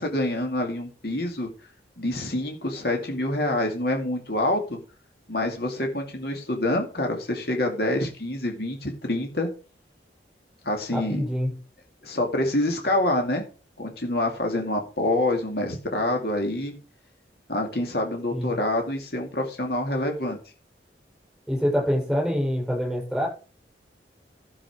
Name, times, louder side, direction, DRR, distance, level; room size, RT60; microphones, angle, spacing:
voice 1, 0.0-1.5 2.0-4.8 5.3-9.5 10.6-11.2 12.0-13.4 13.8-16.8 17.5-20.4, left 1 dB, 60° left, 2 dB, 2.4 m, -26 dB
voice 2, 10.9-11.5 18.3-18.5 21.5-23.3, equal, ahead, -3 dB, 7.0 m, -25 dB
13.0 x 7.1 x 4.9 m, 0.35 s
head